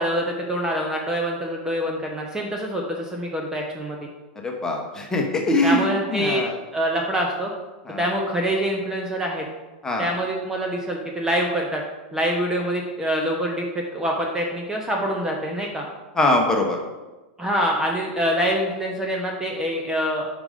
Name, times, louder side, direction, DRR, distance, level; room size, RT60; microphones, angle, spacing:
voice 1, 0.0-4.1 5.6-6.4 6.7-7.5 8.0-9.5 10.0-11.8 12.1-13.6 13.9-15.9 17.4-20.3, equal, 10° right, 0 dB, 0.9 m, -25 dB
voice 2, 4.4-6.6 7.9-8.0 9.8-10.1 16.1-16.8, left 2 dB, 10° left, 1 dB, 1.1 m, -22 dB
5.1 x 5.1 x 5.0 m, 1.2 s
hypercardioid pair, 125°, 5 cm